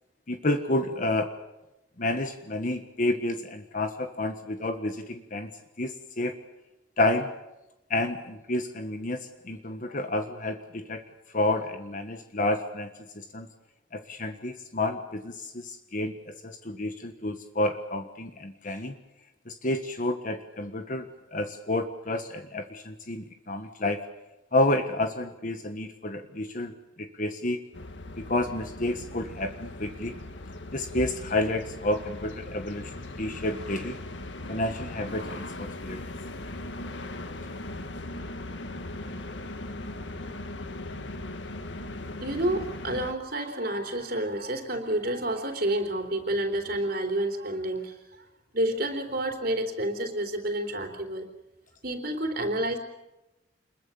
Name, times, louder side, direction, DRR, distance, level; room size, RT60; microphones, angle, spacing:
voice 1, 0.3-1.3 2.0-5.5 5.8-6.3 7.0-7.3 7.9-11.0 11.3-13.5 13.9-19.0 19.5-24.0 24.5-27.6 28.2-30.1 30.7-34.0 34.5-36.1, left 1 dB, 45° left, 7 dB, 1.5 m, -30 dB
sound 1, 27.7-43.1, left 2 dB, 80° left, 1.9 m, -39 dB
voice 2, 42.2-48.3 48.5-51.3 51.8-52.8, right 1 dB, 55° right, 4 dB, 3.5 m, -29 dB
27.0 x 22.0 x 7.1 m, 0.95 s
head